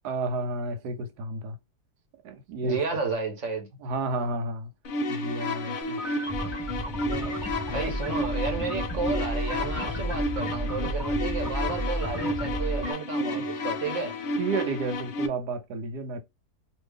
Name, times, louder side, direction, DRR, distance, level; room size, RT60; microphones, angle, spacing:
voice 1, 0.0-1.6 2.2-2.8 3.8-4.7 5.1-6.0 7.1-7.4 7.7-7.9 13.3-13.5 14.4-16.2, right 2 dB, 80° right, 1.3 m, -31 dB
voice 2, 2.6-3.7 7.7-14.1, right 4 dB, 55° right, 1.2 m, -32 dB
sound 1, 4.8-15.3, left 1 dB, 75° left, 0.5 m, -32 dB
sound 2, 5.8-12.9, right 1 dB, ahead, 0.6 m, -32 dB
2.8 x 2.6 x 3.4 m
omnidirectional pair, 1.7 m